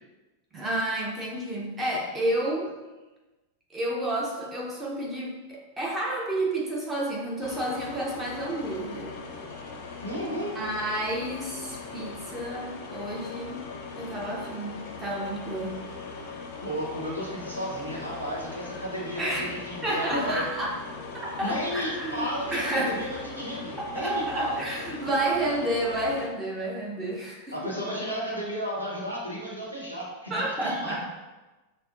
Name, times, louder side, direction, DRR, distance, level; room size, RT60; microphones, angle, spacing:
voice 1, 0.5-2.7 3.7-9.1 10.3-13.6 14.0-15.8 19.2-19.5 19.8-20.7 21.2-23.1 23.8-27.6 30.3-31.0, right 1 dB, 15° right, -3 dB, 0.9 m, -30 dB
sound 1, 7.4-26.3, left 4 dB, 45° left, 0.5 m, -40 dB
voice 2, 10.0-10.5 16.6-20.4 21.4-22.6 22.8-24.6 27.5-31.0, equal, 85° right, -5 dB, 1.1 m, -33 dB
5.9 x 2.2 x 2.4 m, 1.2 s
figure-of-eight pair, 90°, 0 cm